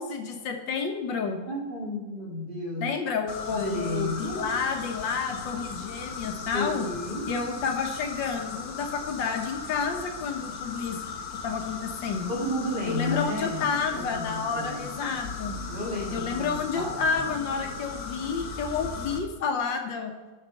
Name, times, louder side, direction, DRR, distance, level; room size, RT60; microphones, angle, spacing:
voice 1, 0.0-1.4 2.8-6.9 7.3-11.0 11.4-12.3 12.9-15.6 16.1-20.1, left 5 dB, 75° left, 4 dB, 1.7 m, -30 dB
voice 2, 1.5-2.9 3.5-4.5 6.5-7.3 12.3-13.7 13.9-14.8 15.7-17.1, left 1 dB, 25° right, -3 dB, 2.2 m, -32 dB
sound 1, 3.3-19.2, left 5 dB, 55° left, 1.2 m, -38 dB
11.5 x 4.2 x 5.3 m, 1.2 s
omnidirectional pair, 2.1 m